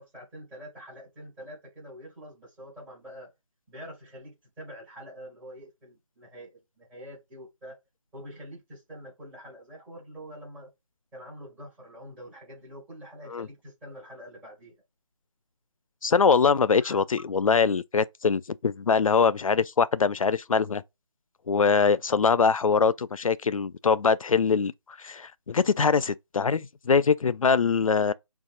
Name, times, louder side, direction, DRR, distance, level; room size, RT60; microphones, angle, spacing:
voice 1, 0.0-3.3 3.7-7.8 8.1-10.7 11.1-14.7 16.8-17.0, equal, 5° right, 1.6 m, -45 dB
voice 2, 16.0-20.8 21.5-24.7 25.0-28.1, left 5 dB, 80° left, 0.4 m, -23 dB
5.4 x 2.3 x 2.4 m
figure-of-eight pair, 160°, 17 cm